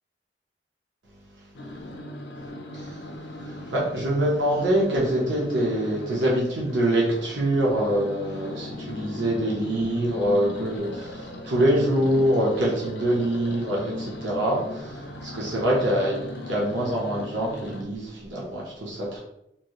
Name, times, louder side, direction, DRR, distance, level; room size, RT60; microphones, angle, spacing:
sound 1, 1.5-17.8, left 1 dB, 70° left, 0.4 m, -38 dB
voice 1, 3.4-16.2 16.5-19.2, right 1 dB, 85° right, -4 dB, 0.9 m, -25 dB
3.1 x 2.7 x 3.0 m, 0.81 s
head